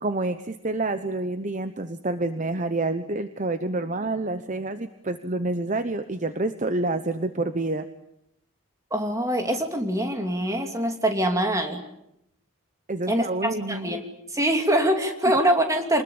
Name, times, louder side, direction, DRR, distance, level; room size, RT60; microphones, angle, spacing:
voice 1, 0.0-7.9 12.9-13.9, right 2 dB, 35° right, 10 dB, 0.9 m, -28 dB
voice 2, 8.9-11.8 13.1-14.0 14.3-16.0, right 1 dB, 15° right, 4 dB, 2.7 m, -24 dB
27.5 x 21.0 x 8.7 m, 0.81 s
head